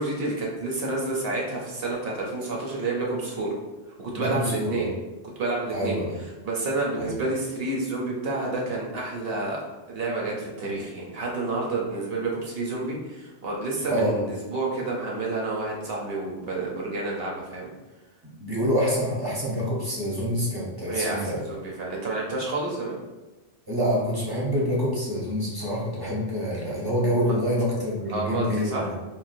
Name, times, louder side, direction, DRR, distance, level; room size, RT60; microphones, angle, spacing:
voice 1, 0.0-3.5 4.0-4.9 5.4-6.0 6.4-9.6 9.9-17.7 20.8-23.0 27.3-27.4 28.1-28.9, right 2 dB, 60° right, -2 dB, 0.8 m, -29 dB
voice 2, 4.1-4.9 5.7-6.2 7.0-7.1 13.9-14.3 18.4-21.4 23.7-28.9, equal, 25° right, -6 dB, 0.6 m, -26 dB
3.7 x 2.2 x 2.5 m, 1.1 s
omnidirectional pair, 1.2 m